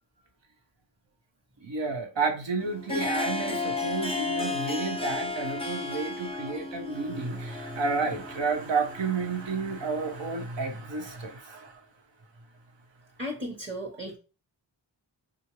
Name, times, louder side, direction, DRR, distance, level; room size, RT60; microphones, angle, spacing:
voice 1, 1.6-11.8, right 4 dB, 70° right, 0.9 m, -31 dB
Harp, 2.6-10.3, left 3 dB, 15° left, 0.6 m, -34 dB
voice 2, 13.2-14.2, equal, 25° right, 1.1 m, -35 dB
3.7 x 2.6 x 3.0 m
cardioid pair, 40°, 46 cm